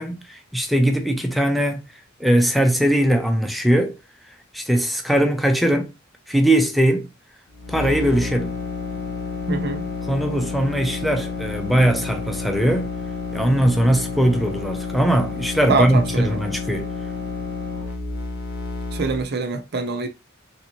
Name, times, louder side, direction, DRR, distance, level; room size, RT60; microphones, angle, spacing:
voice 1, 0.0-1.8 2.2-3.9 4.5-5.9 6.3-7.1 7.7-8.5 10.0-12.9 13.3-16.9, right 1 dB, ahead, 0.4 m, -20 dB
sound 1, 7.5-19.2, left 4 dB, 50° left, 1.0 m, -30 dB
voice 2, 9.5-9.9 15.7-16.4 18.9-20.1, right 4 dB, 50° right, 0.5 m, -24 dB
3.3 x 2.7 x 3.0 m
head